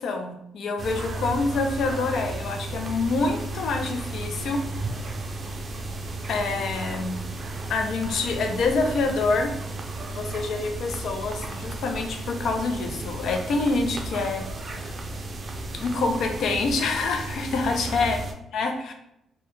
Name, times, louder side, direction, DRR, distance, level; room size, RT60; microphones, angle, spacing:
voice 1, 0.0-4.9 6.3-7.2 7.7-9.6 10.2-14.9 15.7-18.2 18.5-18.9, left 3 dB, 70° left, 4 dB, 0.4 m, -26 dB
sound 1, 0.8-18.3, right 2 dB, 40° right, 0.4 m, -34 dB
2.2 x 2.1 x 2.9 m, 0.80 s
cardioid pair, 90°, 0 cm